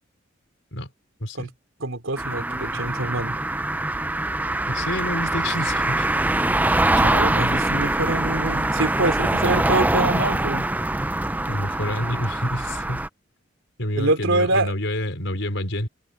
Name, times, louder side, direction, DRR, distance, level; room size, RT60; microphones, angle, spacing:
voice 1, 1.2-1.5 4.7-6.1 11.5-13.1 13.8-15.9, left 1 dB, 65° left, 5.4 m, -28 dB
voice 2, 1.8-3.3 6.9-10.7 14.0-14.7, right 2 dB, 80° right, 3.1 m, -25 dB
sound 1, 2.2-13.1, right 1 dB, 10° right, 0.5 m, -23 dB
head